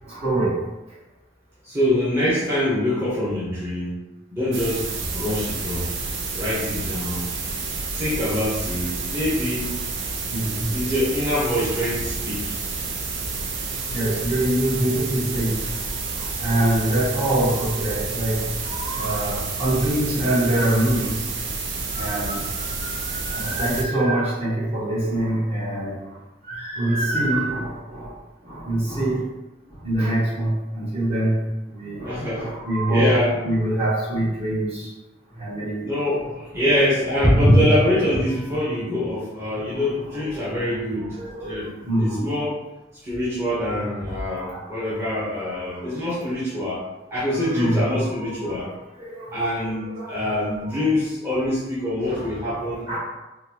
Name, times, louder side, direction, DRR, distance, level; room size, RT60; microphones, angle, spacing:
voice 1, 0.0-0.6 7.5-7.6 10.3-10.7 13.9-15.8 16.1-21.2 21.8-26.2 26.4-28.2 28.4-29.3 29.8-31.4 31.7-34.9 35.3-35.9 37.0-37.1 39.7-42.3 44.4-46.4 47.3-48.7 49.0-50.3 50.6-50.8 52.1-53.0, right 1 dB, 35° right, -7 dB, 1.2 m, -25 dB
voice 2, 1.6-3.9 4.3-5.9 6.3-7.2 7.9-9.7 10.7-12.5 32.0-32.5 32.9-33.4 35.8-41.1 41.4-42.6 43.0-46.8 47.1-48.7 49.3-52.8, left 1 dB, 15° right, -10 dB, 0.8 m, -24 dB
sound 1, 4.5-23.8, right 4 dB, 80° right, 0.5 m, -29 dB
3.9 x 2.2 x 2.9 m, 1.0 s
head